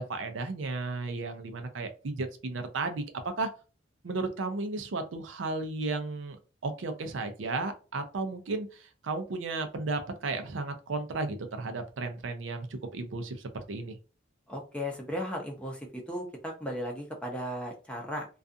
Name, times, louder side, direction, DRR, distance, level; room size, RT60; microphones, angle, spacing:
voice 1, 0.0-3.5 4.0-6.4 6.6-14.0, right 3 dB, 75° right, 7 dB, 0.5 m, -34 dB
voice 2, 14.5-18.3, equal, 5° left, 0 dB, 0.6 m, -36 dB
2.4 x 2.3 x 2.5 m, 0.34 s
head